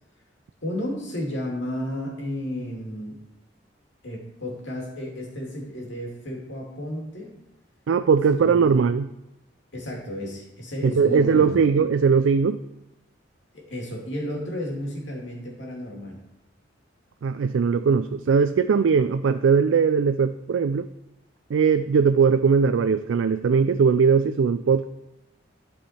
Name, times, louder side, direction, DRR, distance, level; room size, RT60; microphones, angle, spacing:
voice 1, 0.6-3.2 4.0-7.3 8.3-8.8 9.7-11.6 13.5-16.2, left 1 dB, 75° left, -1 dB, 2.5 m, -33 dB
voice 2, 7.9-9.1 10.8-12.6 17.2-20.9 21.5-24.9, right 5 dB, 90° right, 10 dB, 0.4 m, -20 dB
12.0 x 4.8 x 4.3 m, 0.95 s
head